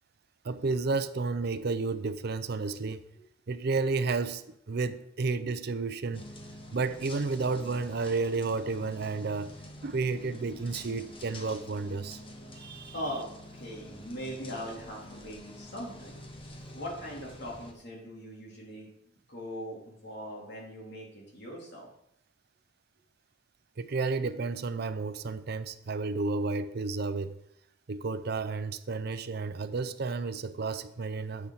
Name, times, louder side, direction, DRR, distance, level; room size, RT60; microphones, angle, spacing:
voice 1, 0.4-3.0 3.5-6.2 6.7-9.5 9.8-12.2 12.6-12.9 23.8-27.3 27.9-31.5, right 3 dB, 55° right, 0.5 m, -31 dB
sound 1, 6.1-17.7, left 1 dB, 25° left, 1.2 m, -47 dB
voice 2, 12.9-16.2 16.7-21.9, equal, 60° left, 3.4 m, -40 dB
10.0 x 8.3 x 4.0 m
head